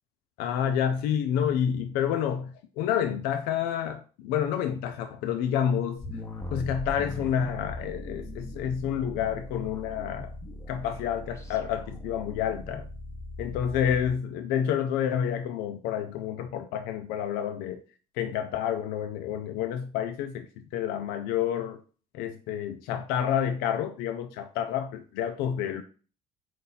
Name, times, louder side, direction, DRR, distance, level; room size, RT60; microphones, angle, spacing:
voice 1, 0.4-6.0 6.5-10.3 10.7-12.8 13.4-17.8 18.2-21.8 22.1-25.8, left 9 dB, 80° left, 0.5 m, -29 dB
sound 1, 6.0-14.1, left 1 dB, 15° left, 0.8 m, -40 dB
4.1 x 2.6 x 3.9 m
supercardioid pair, 70°, 16 cm